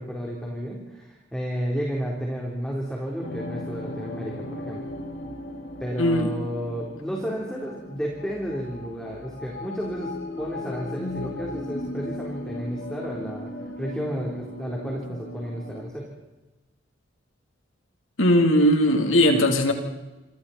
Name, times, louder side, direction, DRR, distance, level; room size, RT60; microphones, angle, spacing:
voice 1, 0.0-4.8 5.8-13.5 13.8-16.1, equal, 5° left, -2 dB, 3.9 m, -32 dB
sound 1, 3.2-15.8, left 1 dB, 65° left, 3.3 m, -37 dB
voice 2, 6.0-6.3 18.2-19.7, equal, 85° left, 3 dB, 3.6 m, -19 dB
29.0 x 25.5 x 4.4 m, 1.1 s
head